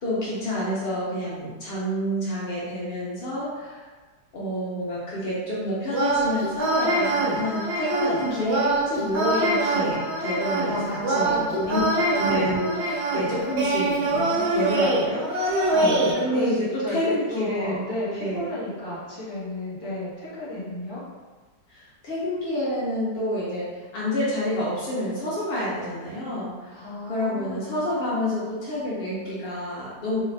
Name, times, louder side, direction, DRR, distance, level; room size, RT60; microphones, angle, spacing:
voice 1, 0.0-3.9 4.3-17.9 18.2-18.5 21.7-30.2, equal, 60° left, -7 dB, 0.6 m, -28 dB
sound 1, 5.9-16.1, right 2 dB, 85° right, 0.5 m, -24 dB
voice 2, 10.6-11.9 13.2-14.7 15.7-21.0 26.7-27.9, left 1 dB, 30° left, -10 dB, 1.5 m, -33 dB
3.0 x 2.4 x 3.2 m, 1.3 s
omnidirectional pair, 1.8 m